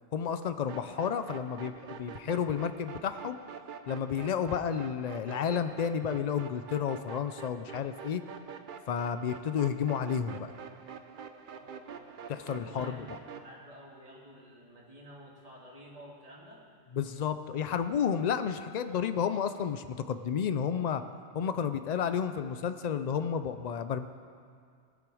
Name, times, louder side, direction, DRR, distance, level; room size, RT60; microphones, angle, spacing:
voice 1, 0.1-3.4 3.9-8.2 8.9-10.5 12.3-13.1 16.9-21.0 21.3-24.1, left 7 dB, 75° left, 10 dB, 0.3 m, -31 dB
sound 1, 0.7-13.5, right 6 dB, 55° right, 0.7 m, -46 dB
voice 2, 11.6-12.1 12.4-16.6, equal, 30° right, -5 dB, 2.2 m, -51 dB
19.5 x 6.9 x 4.9 m, 2.2 s
omnidirectional pair, 1.3 m